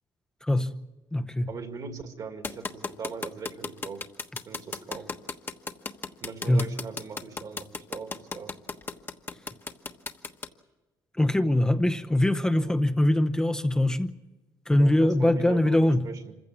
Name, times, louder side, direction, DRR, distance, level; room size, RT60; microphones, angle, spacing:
voice 1, 0.4-0.7 1.1-1.5 6.5-6.7 11.2-14.1 14.7-16.0, left 1 dB, 10° left, 0.8 m, -22 dB
voice 2, 1.5-4.0 4.5-5.1 6.2-8.6 12.6-12.8 14.8-16.4, right 5 dB, 55° right, 2.2 m, -40 dB
sound 1, 2.4-10.5, left 4 dB, 30° left, 1.2 m, -34 dB
26.5 x 15.5 x 8.3 m
cardioid pair, 110°, 8 cm